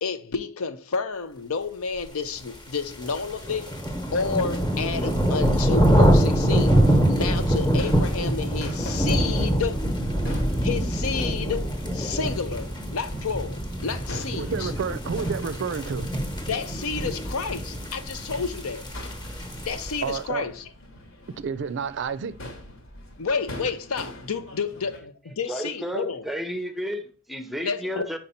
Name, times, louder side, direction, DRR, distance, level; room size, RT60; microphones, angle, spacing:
voice 1, 0.0-3.8 4.1-9.9 10.6-14.7 16.5-18.9 19.7-20.6 23.2-26.2 27.6-28.2, left 5 dB, 90° left, 0.6 m, -30 dB
sound 1, 2.6-20.1, right 1 dB, 20° left, 1.0 m, -24 dB
Crowd / Fireworks, 7.7-25.0, left 1 dB, 65° left, 1.2 m, -44 dB
voice 2, 14.3-16.1 20.0-20.4 21.4-22.4, right 6 dB, 60° right, 0.4 m, -30 dB
voice 3, 25.5-28.2, equal, ahead, 0.6 m, -32 dB
5.2 x 4.5 x 4.3 m
head